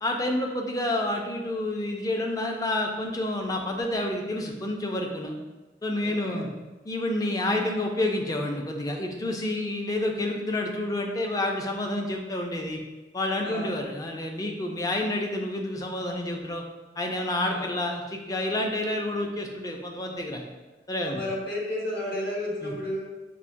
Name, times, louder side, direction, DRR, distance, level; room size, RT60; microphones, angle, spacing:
voice 1, 0.0-5.4 5.8-6.5 6.9-12.8 13.1-16.6 17.0-20.4 20.9-21.2 22.6-22.7, left 1 dB, 20° left, 2 dB, 0.4 m, -29 dB
voice 2, 6.0-6.4 13.4-13.7 17.5-17.7 21.0-23.1, left 1 dB, 65° left, -6 dB, 1.3 m, -32 dB
5.6 x 2.1 x 2.6 m, 1.2 s
head